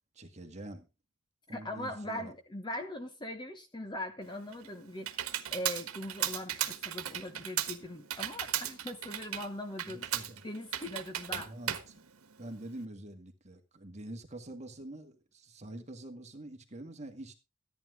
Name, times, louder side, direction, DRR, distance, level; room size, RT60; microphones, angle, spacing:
voice 1, 0.1-0.9 1.5-2.3 9.9-10.4 11.3-12.0 12.4-17.3, right 1 dB, 30° right, 1.9 m, -46 dB
voice 2, 1.5-10.1 10.4-11.8, left 1 dB, 20° left, 1.2 m, -41 dB
Computer keyboard, 4.2-12.8, right 11 dB, 80° right, 1.4 m, -37 dB
14.0 x 9.6 x 3.8 m
head